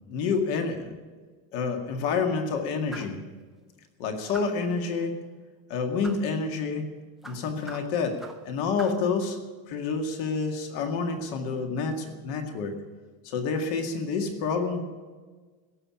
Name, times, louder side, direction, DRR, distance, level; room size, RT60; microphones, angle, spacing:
voice 1, 0.1-0.9 1.5-3.2 4.0-5.2 5.7-6.9 7.2-8.2 8.5-9.4 9.7-12.8 13.2-14.8, left 4 dB, 50° left, 4 dB, 2.1 m, -28 dB
sound 1, 2.9-3.2 4.3-4.7 6.0-6.3 7.2-8.5 8.8-9.1, right 2 dB, ahead, 0.6 m, -44 dB
17.0 x 7.7 x 10.0 m, 1.4 s
cardioid pair, 170°, 45 cm